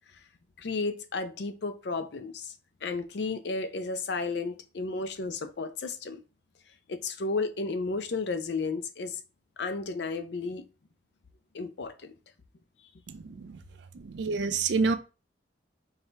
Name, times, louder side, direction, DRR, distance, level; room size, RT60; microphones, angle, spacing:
voice 1, 0.6-2.5 2.8-6.2 6.9-9.2 9.6-10.7 11.5-12.1, left 3 dB, 65° left, 0.5 m, -33 dB
voice 2, 13.1-13.6 13.9-15.0, right 4 dB, 70° right, 0.4 m, -28 dB
4.7 x 2.7 x 3.2 m
head